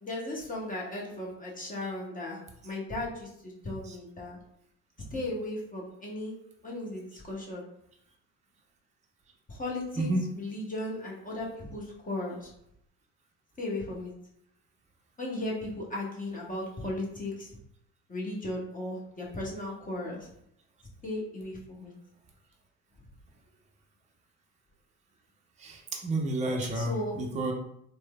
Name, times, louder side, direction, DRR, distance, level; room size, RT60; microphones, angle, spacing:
voice 1, 0.0-2.4 2.6-4.4 5.1-6.3 6.6-7.6 9.5-12.5 13.6-14.1 15.2-17.5 18.1-20.3 21.0-21.9 26.7-27.2, left 1 dB, 20° left, -4 dB, 0.9 m, -36 dB
voice 2, 10.0-10.3 25.6-27.5, right 2 dB, 20° right, 0 dB, 0.6 m, -30 dB
3.0 x 2.2 x 2.2 m, 0.74 s
hypercardioid pair, 60°, 39 cm